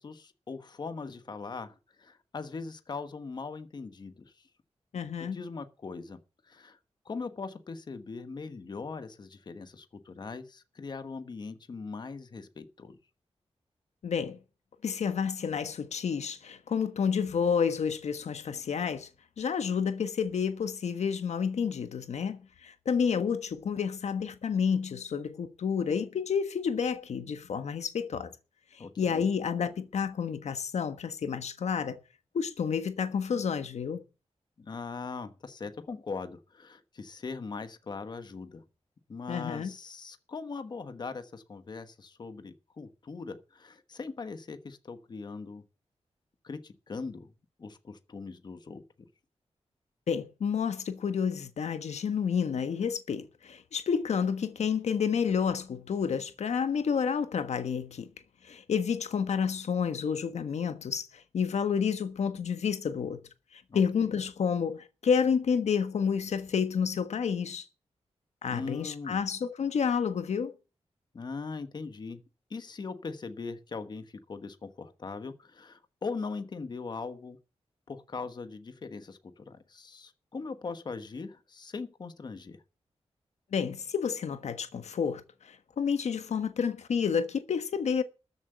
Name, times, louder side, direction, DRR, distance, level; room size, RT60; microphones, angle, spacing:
voice 1, 0.0-4.5 5.2-6.8 7.0-13.0 28.8-29.3 34.6-38.6 39.1-45.6 46.4-47.3 47.6-48.8 63.7-64.2 68.5-69.2 71.1-72.2 72.5-77.4 77.9-82.6, left 4 dB, 40° left, 1.1 m, -40 dB
voice 2, 4.9-5.4 14.0-14.4 14.8-19.1 19.4-28.3 29.0-32.0 32.3-34.0 39.3-39.7 50.1-58.1 58.4-63.2 63.5-67.6 68.4-70.5 83.5-88.0, left 6 dB, 90° left, 1.3 m, -30 dB
13.5 x 7.5 x 7.9 m
wide cardioid pair, 180°, 11 cm